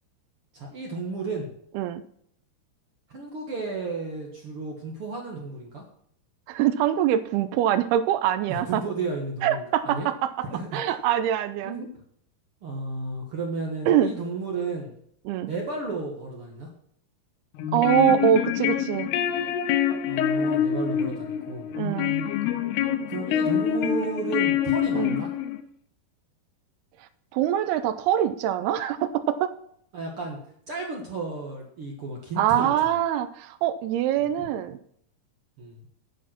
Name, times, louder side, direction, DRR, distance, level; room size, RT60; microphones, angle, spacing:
voice 1, 0.5-1.5 3.1-5.8 8.5-10.1 10.4-11.0 11.6-11.9 12.6-15.0 15.5-16.7 20.1-21.7 23.1-25.3 29.9-30.4 30.7-32.9 34.4-34.5 35.6-35.8, right 3 dB, 60° right, 0 dB, 1.4 m, -33 dB
voice 2, 6.5-8.8 9.4-10.3 10.7-11.8 13.9-14.1 15.3-15.5 17.7-19.1 21.7-22.1 24.9-25.2 27.3-29.5 32.4-34.8, right 11 dB, 85° right, 13 dB, 2.5 m, -24 dB
sound 1, 17.6-25.6, left 9 dB, 85° left, 2.9 m, -26 dB
9.5 x 8.4 x 5.9 m, 0.66 s
omnidirectional pair, 4.6 m